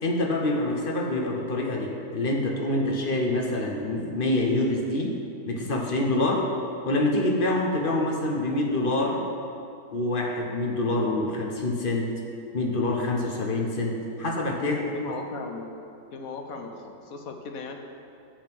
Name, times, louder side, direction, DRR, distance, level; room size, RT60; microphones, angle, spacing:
voice 1, 0.0-5.2 5.5-6.5 6.8-9.2 9.9-12.1 12.5-14.8 15.1-15.2, left 2 dB, 40° left, 0 dB, 0.9 m, -26 dB
voice 2, 14.6-15.7 16.1-17.8, left 4 dB, 60° left, 4 dB, 1.2 m, -37 dB
11.5 x 3.9 x 7.6 m, 2.5 s
omnidirectional pair, 1.9 m